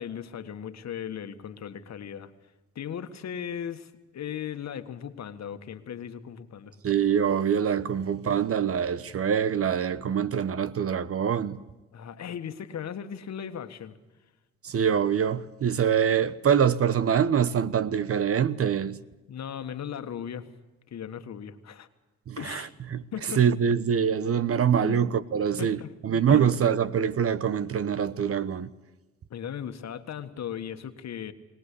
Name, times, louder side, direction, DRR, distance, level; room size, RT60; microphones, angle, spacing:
voice 1, 0.0-2.3 2.8-6.8 11.9-14.0 19.3-20.5 20.9-21.9 22.4-22.7 23.1-23.4 24.8-25.1 25.6-26.0 26.3-26.6 29.3-31.3, left 8 dB, 60° left, 1.7 m, -37 dB
voice 2, 6.8-11.6 14.6-19.0 22.3-28.7, right 8 dB, 50° right, 1.1 m, -25 dB
21.5 x 19.0 x 8.4 m
supercardioid pair, 70°, 30 cm